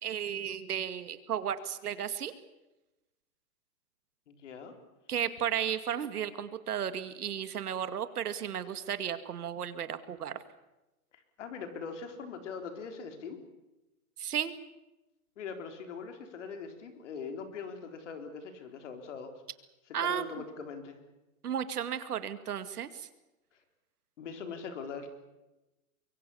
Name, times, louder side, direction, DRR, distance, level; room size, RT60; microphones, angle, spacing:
voice 1, 0.0-2.3 5.1-10.4 14.2-14.5 19.9-20.3 21.4-23.1, right 9 dB, 85° right, 11 dB, 2.4 m, -34 dB
voice 2, 4.3-4.8 11.1-13.4 15.4-19.3 20.0-21.0 24.2-25.1, left 5 dB, 50° left, 6 dB, 4.1 m, -41 dB
24.5 x 23.5 x 7.2 m, 0.99 s
hypercardioid pair, 175°, 44 cm